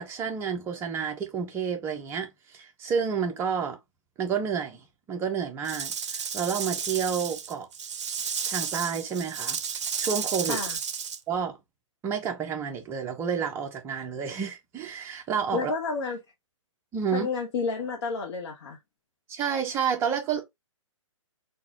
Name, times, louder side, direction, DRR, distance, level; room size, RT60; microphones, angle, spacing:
voice 1, 0.0-3.8 4.2-7.7 8.5-9.6 10.0-10.6 11.3-11.6 12.0-15.7 16.9-17.3 19.3-20.4, right 7 dB, 15° right, 0.6 m, -30 dB
Rattle / Rattle (instrument), 5.6-11.2, right 7 dB, 60° right, 0.5 m, -32 dB
voice 2, 15.5-16.2 17.1-18.8, left 4 dB, 50° left, 0.8 m, -30 dB
3.9 x 2.3 x 2.8 m
figure-of-eight pair, 130°, 17 cm